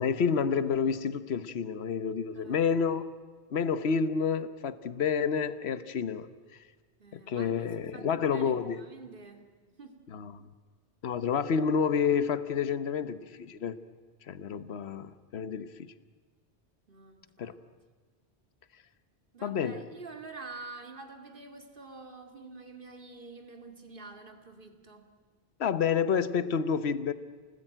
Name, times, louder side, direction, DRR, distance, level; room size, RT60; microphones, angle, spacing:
voice 1, 0.0-3.1 3.5-6.3 7.3-8.8 10.1-10.5 11.0-13.8 14.3-15.9 17.4-17.5 19.4-19.8 25.6-27.1, left 6 dB, 70° left, 1.2 m, -29 dB
voice 2, 2.3-2.7 7.0-9.5 9.8-10.0 14.5-14.9 16.9-17.6 19.3-25.1, right 3 dB, 50° right, 2.5 m, -47 dB
29.5 x 19.5 x 9.0 m
omnidirectional pair, 1.1 m